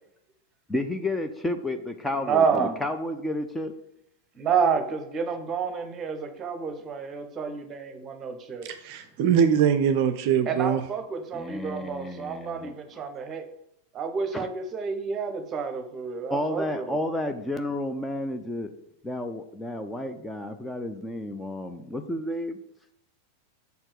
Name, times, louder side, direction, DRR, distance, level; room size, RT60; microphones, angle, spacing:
voice 1, 0.7-3.7 11.3-12.7 14.3-14.5 16.3-18.7 19.0-22.6, left 1 dB, 10° left, 7 dB, 0.6 m, -31 dB
voice 2, 2.2-2.8 4.4-8.7 10.5-13.5 13.9-17.0, right 6 dB, 25° right, 9 dB, 0.9 m, -29 dB
voice 3, 8.6-10.8, right 8 dB, 45° right, 9 dB, 0.5 m, -22 dB
6.8 x 4.4 x 6.5 m, 0.78 s
figure-of-eight pair, 90°, 0 cm